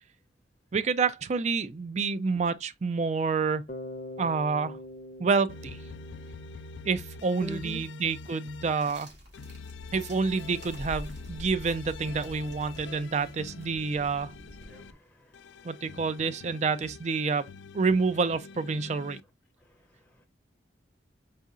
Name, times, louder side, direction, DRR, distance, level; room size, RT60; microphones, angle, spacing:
voice 1, 0.7-3.7 4.2-4.8 5.2-5.8 6.8-9.1 9.9-14.3 15.6-17.5 17.7-19.2, right 4 dB, 40° right, 0.3 m, -28 dB
Bass guitar, 3.7-7.6, left 1 dB, 45° left, 0.7 m, -44 dB
sound 1, 5.5-8.9 9.3-14.9 15.3-19.2, left 4 dB, 90° left, 0.4 m, -45 dB
voice 2, 7.4-7.8 14.7-15.7 19.6-20.3, equal, 10° left, 0.6 m, -44 dB
sound 2, 8.8-15.0, equal, 70° right, 2.6 m, -46 dB
4.2 x 3.7 x 2.4 m
head